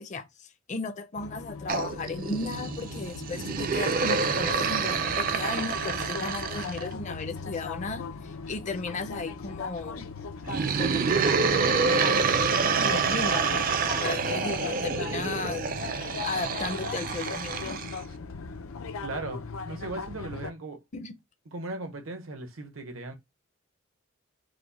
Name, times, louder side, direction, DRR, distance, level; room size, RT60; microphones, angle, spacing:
voice 1, 0.0-10.0 10.8-11.9 12.7-13.6 14.0-15.9 16.2-17.8 20.9-21.1, left 3 dB, 35° left, 0.5 m, -35 dB
sound 1, 1.2-20.5, left 5 dB, 85° left, 0.5 m, -39 dB
sound 2, 1.7-6.9 10.4-18.0, right 5 dB, 40° right, 0.4 m, -27 dB
voice 2, 19.0-20.8 21.5-23.1, right 2 dB, 80° right, 0.9 m, -37 dB
4.9 x 2.1 x 4.0 m
head